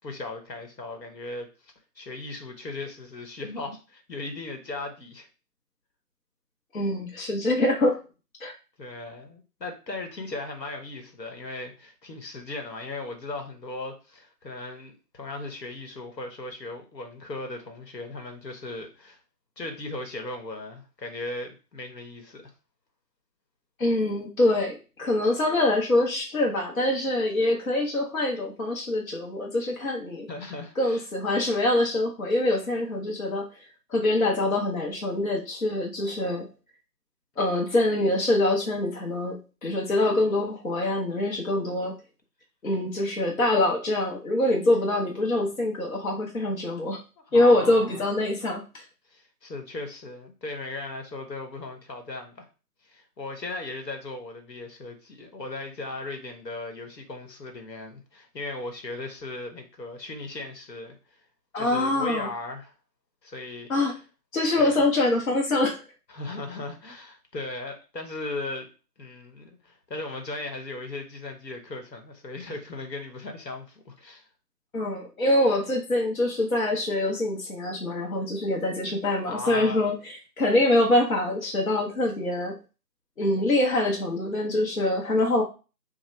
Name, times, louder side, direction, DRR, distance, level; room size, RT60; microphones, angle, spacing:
voice 1, 0.0-5.3 8.8-19.2 19.6-22.5 30.3-31.0 47.3-48.0 49.1-52.5 52.8-61.2 61.6-62.7 63.2-63.7 64.6-64.8 66.1-68.7 69.0-74.2 79.3-79.9, left 2 dB, 85° left, 4 dB, 1.1 m, -37 dB
voice 2, 6.7-8.0 8.4-8.5 23.8-30.3 30.8-33.5 33.9-36.5 37.4-41.9 42.6-47.0 47.3-48.6 61.5-62.3 63.7-63.9 64.3-65.8 74.7-79.9 80.4-82.6 83.2-85.4, left 1 dB, 55° left, 0 dB, 0.8 m, -24 dB
2.9 x 2.2 x 3.2 m, 0.32 s
figure-of-eight pair, 175°, 49 cm